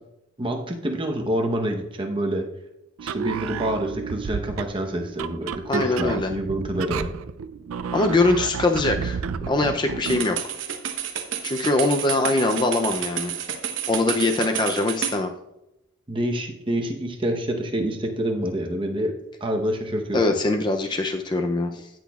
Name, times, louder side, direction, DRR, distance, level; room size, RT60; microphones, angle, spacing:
voice 1, 0.4-2.4 3.0-7.1 16.1-19.1 19.4-20.2, right 1 dB, 25° right, 3 dB, 0.8 m, -27 dB
sound 1, 3.0-10.3, right 6 dB, 80° right, 0.4 m, -31 dB
voice 2, 5.7-6.3 7.9-9.2 9.5-10.5 11.4-13.3 13.9-15.3 20.1-21.9, left 2 dB, 20° left, 5 dB, 0.4 m, -22 dB
sound 2, 10.0-15.2, right 9 dB, 60° right, 0.9 m, -30 dB
16.5 x 6.1 x 2.3 m, 0.91 s
head